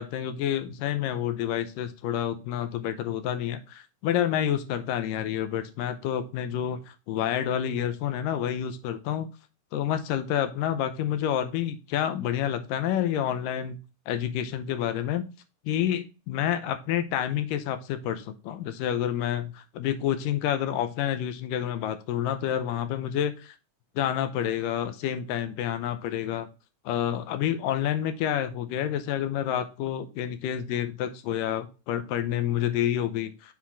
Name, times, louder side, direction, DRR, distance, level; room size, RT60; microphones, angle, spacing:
voice 1, 0.0-9.3 9.7-13.8 14.1-15.3 15.7-23.6 24.0-26.5 26.9-33.5, left 10 dB, 85° left, 10 dB, 2.4 m, -29 dB
7.4 x 4.2 x 3.5 m, 0.31 s
omnidirectional pair, 3.9 m